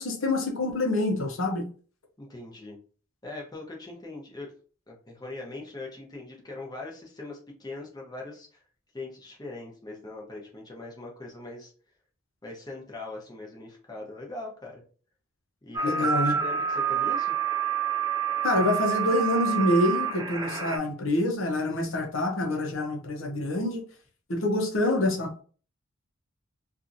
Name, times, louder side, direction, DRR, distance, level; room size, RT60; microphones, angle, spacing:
voice 1, 0.0-1.7 15.8-16.4 18.4-23.8 24.3-25.4, left 1 dB, 70° left, 2 dB, 0.8 m, -26 dB
voice 2, 2.2-2.8 3.2-4.5 4.9-8.6 8.9-11.7 12.4-14.8 15.6-17.3, left 2 dB, 20° left, -1 dB, 0.8 m, -41 dB
sound 1, 15.7-20.8, right 7 dB, 20° right, 0.3 m, -28 dB
2.7 x 2.4 x 2.6 m, 0.40 s
head